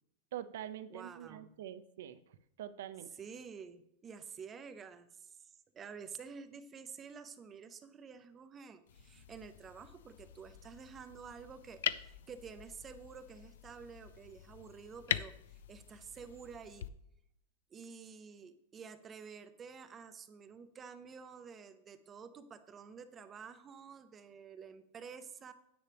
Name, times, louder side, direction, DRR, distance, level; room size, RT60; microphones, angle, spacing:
voice 1, 0.3-3.1, right 11 dB, 60° right, 13 dB, 0.6 m, -45 dB
voice 2, 0.9-1.5 3.1-16.9 17.7-25.5, right 6 dB, 15° right, 11 dB, 0.4 m, -50 dB
sound 1, 8.9-16.9, left 11 dB, 75° left, 0.4 m, -43 dB
9.8 x 8.5 x 3.4 m, 0.80 s
supercardioid pair, 180°, 0 cm